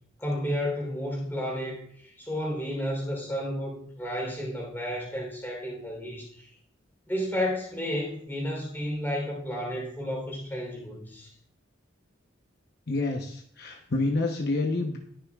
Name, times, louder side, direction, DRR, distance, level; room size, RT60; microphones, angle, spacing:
voice 1, 0.2-6.5 7.1-11.3, equal, 10° left, -1 dB, 3.5 m, -32 dB
voice 2, 12.9-15.0, left 2 dB, 55° left, 1 dB, 1.0 m, -28 dB
19.5 x 6.7 x 2.4 m, 0.66 s
head